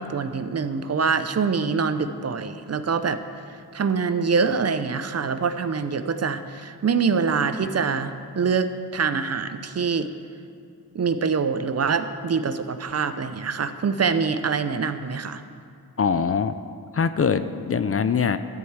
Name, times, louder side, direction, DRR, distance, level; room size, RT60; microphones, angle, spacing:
voice 1, 0.0-3.2 3.7-10.1 10.9-15.4, right 5 dB, 40° right, 10 dB, 0.6 m, -25 dB
voice 2, 16.0-16.6 16.9-18.4, left 6 dB, 40° left, 12 dB, 0.4 m, -22 dB
13.0 x 4.6 x 8.0 m, 2.4 s
cardioid pair, 70°, 38 cm